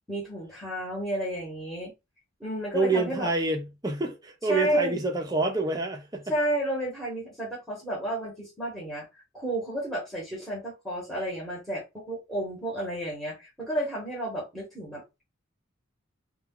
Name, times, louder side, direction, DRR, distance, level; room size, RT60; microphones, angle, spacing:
voice 1, 0.1-1.9 2.4-3.3 4.5-5.0 6.3-9.1 9.3-15.2, right 1 dB, ahead, 1.0 m, -31 dB
voice 2, 2.7-6.3, right 3 dB, 20° right, 0.5 m, -27 dB
2.2 x 2.2 x 3.6 m
head